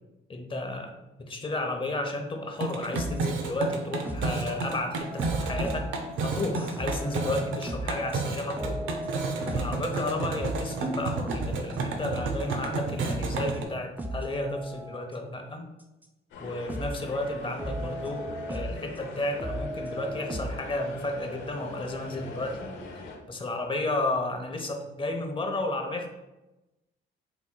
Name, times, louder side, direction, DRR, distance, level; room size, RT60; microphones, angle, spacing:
voice 1, 0.3-5.9 6.2-8.8 9.4-15.6 16.4-26.1, left 2 dB, 25° left, 4 dB, 0.7 m, -32 dB
sound 1, 2.5-13.6, right 3 dB, 75° right, 0.6 m, -32 dB
sound 2, 2.9-4.4 4.7-13.6 14.0-15.1 16.0-16.1 16.7-17.1 17.4-19.0 19.4-20.7, right 1 dB, 10° right, 0.4 m, -37 dB
sound 3, 16.3-23.2, left 2 dB, 75° left, 0.8 m, -42 dB
5.9 x 2.9 x 2.2 m, 1.0 s
cardioid pair, 90°, 20 cm